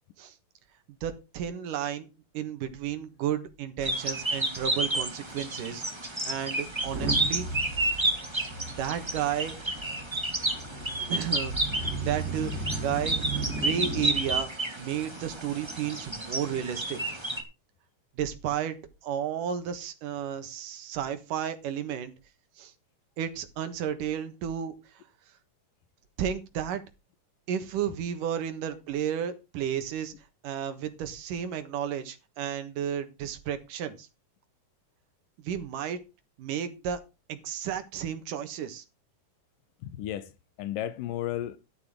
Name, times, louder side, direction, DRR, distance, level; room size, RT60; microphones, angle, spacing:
voice 1, 1.0-2.1 2.3-7.5 8.8-9.6 11.1-11.5 12.0-14.5 14.8-17.0 18.2-18.8 19.0-22.1 22.6-22.7 23.2-24.7 26.2-26.8 27.5-30.1 30.4-34.1 35.4-36.0 36.4-37.0 37.3-38.8, right 9 dB, 80° right, 3.0 m, -32 dB
sound 1, 3.8-17.4, right 2 dB, 10° right, 1.4 m, -31 dB
Motor vehicle (road) / Engine starting / Accelerating revving vroom, 4.1-4.2 4.4-4.7 5.3-5.4 6.7-14.4, right 2 dB, 60° right, 4.4 m, -36 dB
voice 2, 10.5-11.1 39.8-40.3 40.6-41.6, left 12 dB, 90° left, 2.6 m, -35 dB
13.5 x 11.0 x 3.8 m
omnidirectional pair, 3.8 m